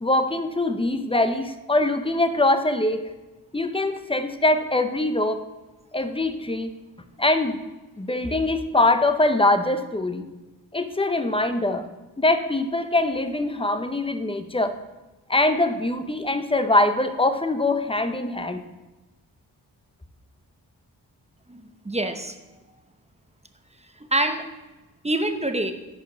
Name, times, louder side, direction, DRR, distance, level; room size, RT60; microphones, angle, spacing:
voice 1, 0.0-3.1 3.5-5.4 5.9-6.7 7.2-7.6 8.0-10.3 10.7-11.9 12.2-14.7 15.3-18.6, left 2 dB, 15° left, 9 dB, 0.7 m, -23 dB
voice 2, 21.5-22.3 24.1-24.4 25.0-25.7, right 1 dB, 15° right, 6 dB, 0.8 m, -25 dB
6.7 x 5.2 x 6.4 m, 1.1 s
cardioid pair, 55°, 41 cm